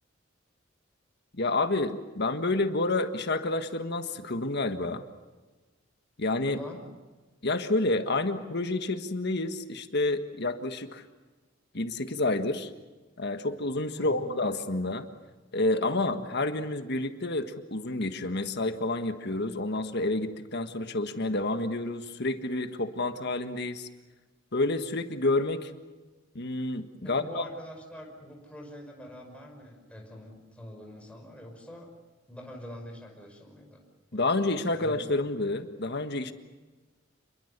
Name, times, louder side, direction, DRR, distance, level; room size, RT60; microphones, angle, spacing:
voice 1, 1.3-5.0 6.2-6.6 7.4-11.0 11.7-12.7 13.2-15.1 15.5-23.9 24.5-25.7 26.3-27.5 34.1-36.3, left 2 dB, 55° left, 8 dB, 1.6 m, -29 dB
voice 2, 6.4-6.8 14.0-14.3 27.0-32.0 32.3-33.8 34.1-34.5 34.7-35.1, equal, 5° left, 1 dB, 5.6 m, -45 dB
28.0 x 22.5 x 6.8 m, 1.3 s
head